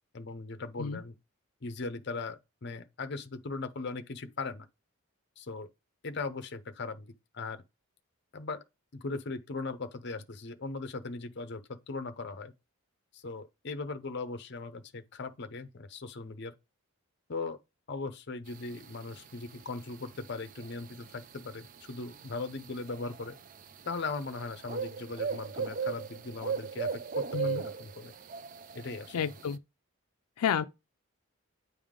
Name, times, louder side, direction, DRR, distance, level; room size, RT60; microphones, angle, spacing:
voice 1, 0.1-1.1 1.6-4.7 5.4-5.7 6.0-7.6 8.3-8.6 8.9-12.5 13.1-16.5 17.3-17.6 17.9-23.4 23.8-28.1 28.7-29.3, left 3 dB, 50° left, 0.6 m, -39 dB
sound 1, 18.5-29.6, right 5 dB, 35° right, 0.3 m, -38 dB
voice 2, 29.1-29.6 30.4-30.6, left 7 dB, 90° left, 0.4 m, -30 dB
9.3 x 3.5 x 3.6 m
head